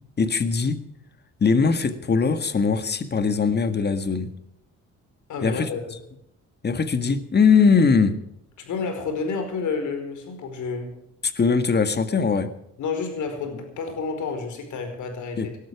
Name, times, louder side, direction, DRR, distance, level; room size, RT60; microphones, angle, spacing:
voice 1, 0.2-0.8 1.4-4.3 5.4-5.7 6.6-8.1 11.2-12.5 15.4-15.5, left 5 dB, 35° left, 10 dB, 1.8 m, -21 dB
voice 2, 5.3-6.0 8.6-10.9 12.8-15.6, left 4 dB, 75° left, 6 dB, 4.9 m, -30 dB
19.5 x 12.5 x 4.9 m, 0.78 s
cardioid pair, 90°, 30 cm